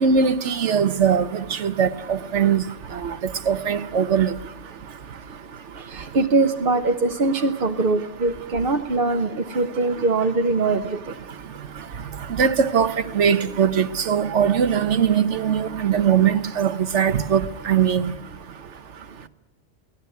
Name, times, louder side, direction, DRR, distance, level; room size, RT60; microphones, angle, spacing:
voice 1, 0.0-2.6 3.5-4.3 12.4-18.1, right 7 dB, 80° right, 1.3 m, -20 dB
voice 2, 5.8-11.2, right 3 dB, 50° right, 1.1 m, -22 dB
23.5 x 18.0 x 9.4 m
omnidirectional pair, 1.2 m